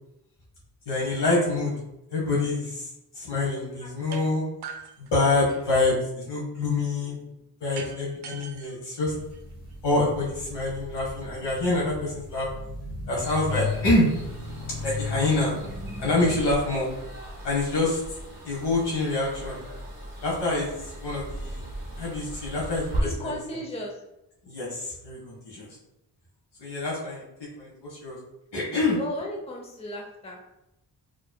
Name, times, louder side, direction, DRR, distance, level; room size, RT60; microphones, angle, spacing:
voice 1, 0.9-1.7 2.1-2.9 3.1-4.4 5.0-7.2 7.6-9.1 9.8-12.5 13.1-14.1 14.8-15.5 16.0-16.9 17.4-18.0 18.4-19.6 20.2-21.7 22.0-23.6 24.5-25.7 26.6-28.2 28.5-29.0, left 2 dB, 80° left, -4 dB, 1.3 m, -26 dB
sound 1, 4.1-4.3 4.6-5.8 7.8-9.7, right 6 dB, 70° right, 0.6 m, -42 dB
sound 2, 9.1-16.4, left 3 dB, 35° left, 0.9 m, -36 dB
sound 3, 13.2-23.0, right 1 dB, 25° right, 1.3 m, -38 dB
voice 2, 23.0-24.0 29.0-30.4, equal, 15° left, -1 dB, 0.6 m, -35 dB
4.8 x 3.1 x 2.2 m, 0.86 s
wide cardioid pair, 150°, 41 cm